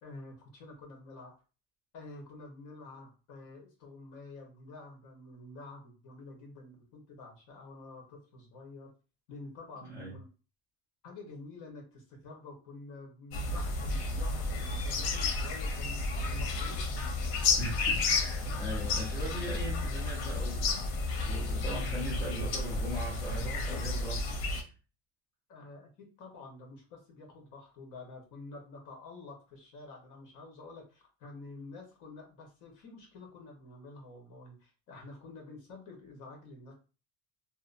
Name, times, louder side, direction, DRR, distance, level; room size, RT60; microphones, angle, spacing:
voice 1, 0.0-1.3 1.9-8.9 9.3-10.3 11.0-16.9 25.5-36.7, left 3 dB, 55° left, 1 dB, 1.1 m, -49 dB
sound 1, 13.3-24.6, left 3 dB, 90° left, 0.7 m, -32 dB
voice 2, 17.6-24.4, equal, 10° left, -8 dB, 0.6 m, -40 dB
2.7 x 2.1 x 2.5 m, 0.34 s
cardioid pair, 165°, 36 cm